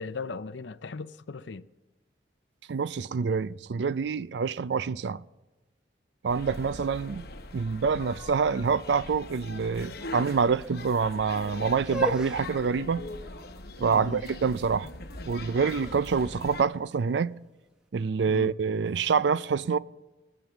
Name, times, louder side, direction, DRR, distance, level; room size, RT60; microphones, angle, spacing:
voice 1, 0.0-1.7 13.9-14.2 18.3-18.6, left 4 dB, 80° left, 0.6 m, -37 dB
voice 2, 2.7-5.2 6.2-7.3 7.5-13.1 13.8-14.9 15.2-17.4 17.9-19.8, right 5 dB, 70° right, 0.4 m, -26 dB
sound 1, 6.3-16.6, left 2 dB, 55° left, 1.0 m, -41 dB
sound 2, 11.7-17.7, left 1 dB, 5° right, 0.8 m, -40 dB
20.0 x 8.9 x 7.1 m
head